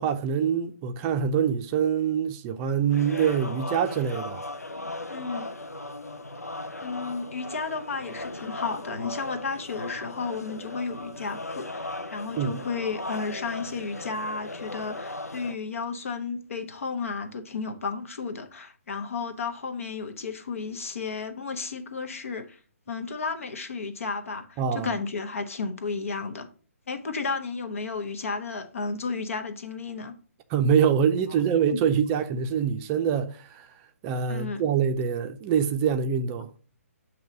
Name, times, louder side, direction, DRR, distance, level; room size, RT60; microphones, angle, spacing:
voice 1, 0.0-4.4 12.4-12.6 24.6-24.9 30.5-33.7 34.0-36.5, right 7 dB, 25° right, 0.5 m, -25 dB
sound 1, 2.9-15.6, left 2 dB, 90° left, 0.6 m, -37 dB
voice 2, 5.1-5.6 6.8-22.6 22.9-26.5 26.9-30.2 31.7-31.8 34.3-34.6, left 4 dB, 60° left, 1.0 m, -33 dB
7.7 x 2.9 x 5.2 m
figure-of-eight pair, 135°, 8 cm